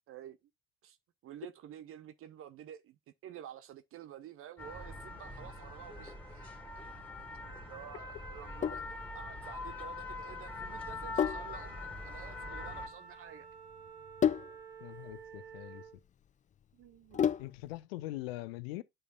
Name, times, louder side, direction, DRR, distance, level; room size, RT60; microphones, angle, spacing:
voice 1, 0.1-0.4 0.8-1.0 1.2-3.0 3.2-6.5 7.7-13.5 16.7-17.3, right 10 dB, 45° right, 0.7 m, -50 dB
sound 1, 4.6-12.9, left 2 dB, 5° left, 2.5 m, -43 dB
Sink (filling or washing), 8.3-17.8, left 9 dB, 25° left, 0.5 m, -36 dB
Wind instrument woodwind instrument, 12.3-16.0, right 7 dB, 85° right, 1.3 m, -51 dB
voice 2, 14.8-15.8 17.4-18.8, left 17 dB, 70° left, 0.7 m, -42 dB
9.4 x 5.6 x 2.5 m
figure-of-eight pair, 60°, 31 cm